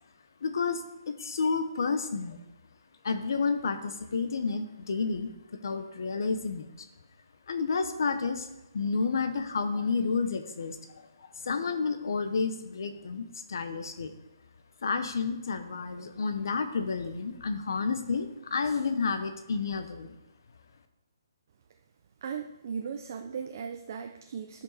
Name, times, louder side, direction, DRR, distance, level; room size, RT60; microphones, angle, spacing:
voice 1, 0.4-2.4 3.0-5.3 5.6-6.9 7.5-8.5 8.7-14.1 14.8-20.2, left 4 dB, 60° left, 8 dB, 1.0 m, -30 dB
voice 2, 22.2-24.6, right 6 dB, 40° right, 5 dB, 0.6 m, -37 dB
12.0 x 5.4 x 4.2 m, 0.98 s
hypercardioid pair, 170°, 2 cm